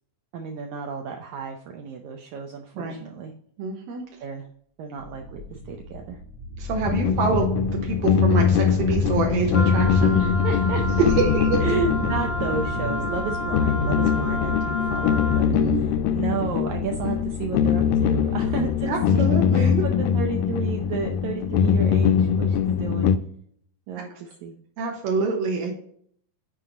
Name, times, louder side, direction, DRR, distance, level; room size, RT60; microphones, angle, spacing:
voice 1, 0.3-3.3 4.2-4.5 4.8-6.2 10.2-11.0 11.6-15.5 16.1-19.2 19.5-23.1 23.9-24.6, right 5 dB, 90° right, 3 dB, 1.6 m, -32 dB
voice 2, 3.6-4.0 6.6-10.2 11.0-11.6 15.5-15.8 18.9-19.8 24.8-25.7, right 4 dB, 75° right, 0 dB, 2.6 m, -26 dB
sound 1, 5.0-22.8, equal, 55° right, 2.6 m, -34 dB
sound 2, 6.9-23.2, left 7 dB, 80° left, 2.1 m, -22 dB
Wind instrument woodwind instrument, 9.5-15.5, equal, 55° left, 0.9 m, -31 dB
7.8 x 4.7 x 3.7 m, 0.62 s
omnidirectional pair, 4.2 m